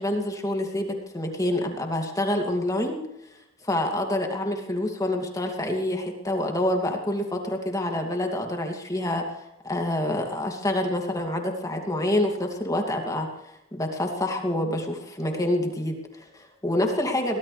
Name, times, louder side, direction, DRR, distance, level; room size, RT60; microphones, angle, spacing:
voice 1, 0.0-3.0 3.6-17.4, left 1 dB, 15° left, 2 dB, 2.5 m, -27 dB
23.5 x 18.5 x 3.4 m, 0.85 s
head